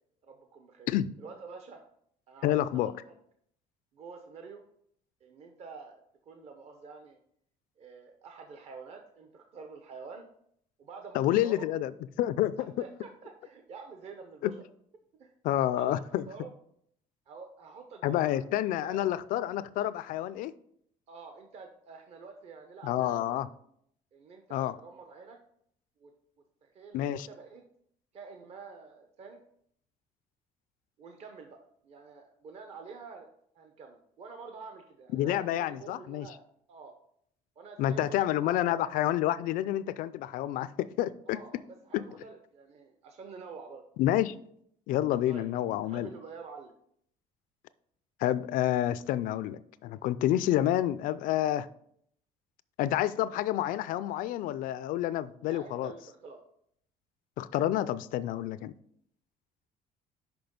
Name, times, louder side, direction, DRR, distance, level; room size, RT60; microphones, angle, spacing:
voice 1, 0.2-1.8 2.3-3.1 3.9-4.6 5.2-7.2 7.8-10.3 10.8-11.7 12.8-14.5 15.2-15.3 15.7-16.5 17.3-19.0 21.1-23.1 24.1-25.4 26.0-26.1 26.6-27.6 28.1-29.4 31.0-31.6 31.8-36.4 36.7-36.9 37.6-39.0 41.3-41.6 41.8-43.8 45.3-45.5 45.8-46.7 55.5-56.4, right 4 dB, 45° right, 4 dB, 0.7 m, -48 dB
voice 2, 2.4-2.9 11.1-11.9 12.2-12.5 14.4-14.5 15.4-16.2 18.0-20.5 22.8-23.5 24.5-24.8 26.9-27.3 35.1-36.3 37.8-41.4 41.9-42.0 44.0-44.3 44.9-46.1 48.2-51.7 52.8-55.9 57.4-58.7, left 13 dB, 65° left, 16 dB, 0.4 m, -29 dB
6.0 x 5.3 x 5.1 m, 0.69 s
cardioid pair, 170°, 15 cm